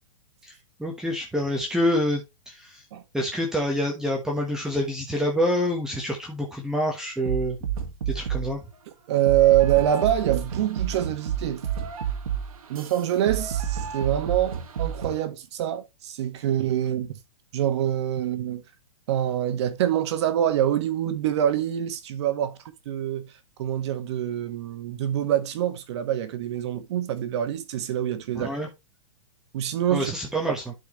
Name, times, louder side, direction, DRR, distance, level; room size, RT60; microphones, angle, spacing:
voice 1, 0.8-2.8 3.1-7.6 8.1-8.6 28.3-28.7 29.9-30.6, equal, 5° right, 1.3 m, -27 dB
sound 1, 7.3-8.6 9.3-15.2, right 8 dB, 85° right, 2.0 m, -30 dB
voice 2, 9.1-11.6 12.7-17.2 17.5-18.6 19.1-22.6 22.8-23.3 23.6-28.5 29.5-30.1, right 11 dB, 50° right, 1.6 m, -25 dB
12.0 x 4.7 x 3.1 m
hypercardioid pair, 150°, 18 cm